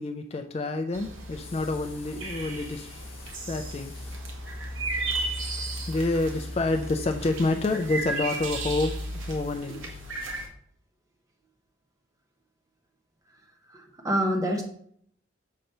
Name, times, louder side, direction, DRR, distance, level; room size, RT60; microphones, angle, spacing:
voice 1, 0.0-4.2 5.2-10.0, left 2 dB, 30° left, 6 dB, 0.3 m, -29 dB
sound 1, 0.9-10.5, right 2 dB, 80° right, 1.2 m, -34 dB
voice 2, 13.7-14.6, equal, 15° right, 2 dB, 0.8 m, -26 dB
6.5 x 3.0 x 5.3 m, 0.64 s
head